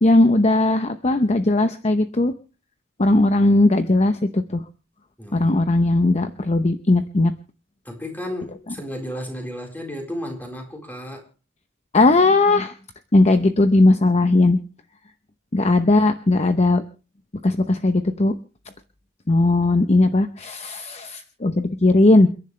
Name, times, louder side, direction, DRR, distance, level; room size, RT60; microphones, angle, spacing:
voice 1, 0.0-2.3 3.0-4.6 5.3-7.3 11.9-12.7 13.1-14.6 15.5-16.8 17.4-18.4 19.3-22.3, left 2 dB, 30° left, 9 dB, 0.8 m, -18 dB
voice 2, 5.2-5.5 7.8-11.2, left 1 dB, 10° left, 1 dB, 4.3 m, -33 dB
29.0 x 10.5 x 3.3 m, 0.36 s
head